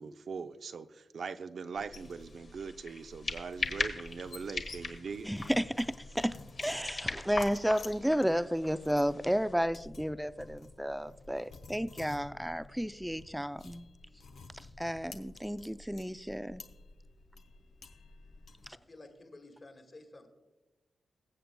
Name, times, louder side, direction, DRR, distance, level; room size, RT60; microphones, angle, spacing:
voice 1, 0.0-5.3, right 5 dB, 65° right, 0.5 m, -41 dB
sound 1, 1.7-18.7, left 3 dB, 80° left, 0.9 m, -52 dB
sound 2, 1.9-9.5, left 4 dB, 60° left, 1.4 m, -40 dB
voice 2, 5.2-13.9 14.5-16.6, equal, ahead, 0.3 m, -32 dB
voice 3, 18.7-20.3, left 2 dB, 40° left, 1.8 m, -52 dB
22.0 x 7.7 x 2.2 m
cardioid pair, 85°, 0 cm